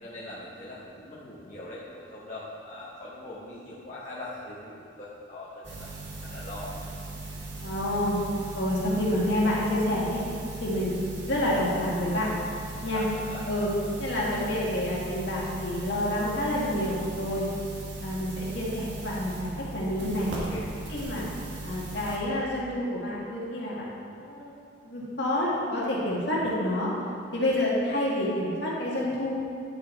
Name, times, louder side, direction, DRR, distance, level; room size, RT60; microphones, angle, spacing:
voice 1, 0.0-6.7 12.6-13.4 20.3-20.7, left 1 dB, 40° left, -8 dB, 1.0 m, -41 dB
sound 1, 5.6-22.2, right 2 dB, 70° right, 1.6 m, -38 dB
voice 2, 7.6-8.2 8.5-10.2 10.6-12.3 12.8-13.1 13.5-13.7 14.0-17.5 18.0-20.5 20.9-21.2 21.6-23.9 24.2-24.5 24.8-26.9 27.3-29.4, left 1 dB, 65° left, -5 dB, 1.8 m, -28 dB
9.7 x 5.0 x 4.4 m, 2.3 s
head